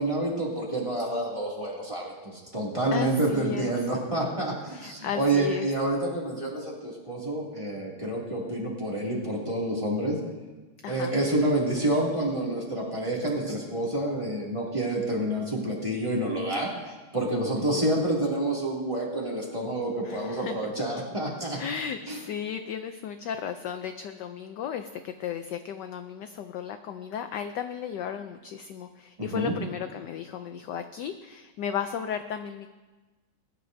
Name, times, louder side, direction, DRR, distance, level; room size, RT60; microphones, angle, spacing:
voice 1, 0.0-10.2 10.9-16.7 17.1-21.6 22.1-22.2 29.2-29.5, right 1 dB, 15° right, -4 dB, 2.5 m, -28 dB
voice 2, 2.9-3.8 4.7-5.7 10.8-11.2 17.6-18.0 20.0-20.7 21.5-32.7, left 8 dB, 75° left, 8 dB, 1.0 m, -35 dB
21.0 x 11.0 x 2.7 m, 1.2 s
omnidirectional pair, 2.3 m